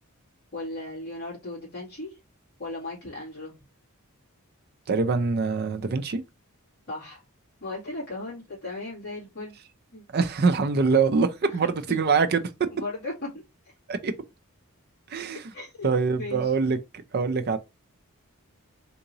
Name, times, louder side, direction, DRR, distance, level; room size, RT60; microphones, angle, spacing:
voice 1, 0.5-2.2 2.6-3.5 6.9-7.2 7.6-9.5 9.9-10.0 11.4-12.0 12.8-13.7 15.5-16.5, left 2 dB, 50° left, 2.2 m, -37 dB
voice 2, 4.9-6.2 10.1-12.4 13.9-14.1 15.1-15.4 15.8-17.6, right 4 dB, 45° right, 0.4 m, -24 dB
3.6 x 2.9 x 2.8 m
head